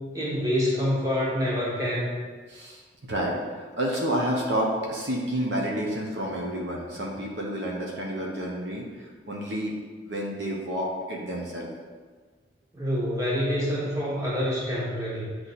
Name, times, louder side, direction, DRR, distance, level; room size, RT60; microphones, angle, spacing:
voice 1, 0.0-2.2 12.7-15.3, equal, 20° right, -6 dB, 1.5 m, -27 dB
voice 2, 2.5-2.8 3.1-9.7 10.0-11.7, equal, 75° right, -2 dB, 1.0 m, -29 dB
7.9 x 3.2 x 4.2 m, 1.5 s
head